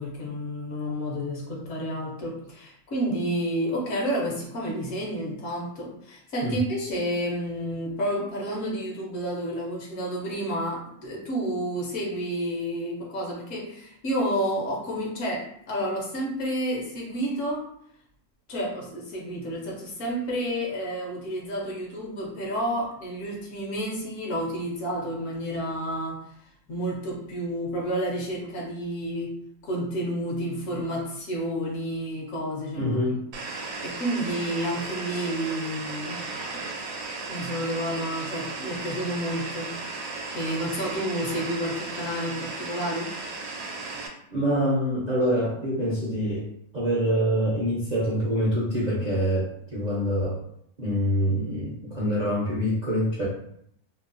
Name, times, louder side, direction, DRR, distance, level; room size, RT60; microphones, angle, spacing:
voice 1, 0.0-17.6 18.5-26.2 26.7-29.3 29.6-33.0 33.6-36.3 36.5-36.7 37.3-39.7 40.3-43.1, equal, 65° left, -2 dB, 1.0 m, -30 dB
voice 2, 32.7-33.2 44.3-50.4 50.8-53.3, equal, 55° right, -7 dB, 0.4 m, -25 dB
sound 1, 33.3-44.1, right 3 dB, 85° right, 1.1 m, -35 dB
3.0 x 2.0 x 2.5 m, 0.71 s
omnidirectional pair, 1.5 m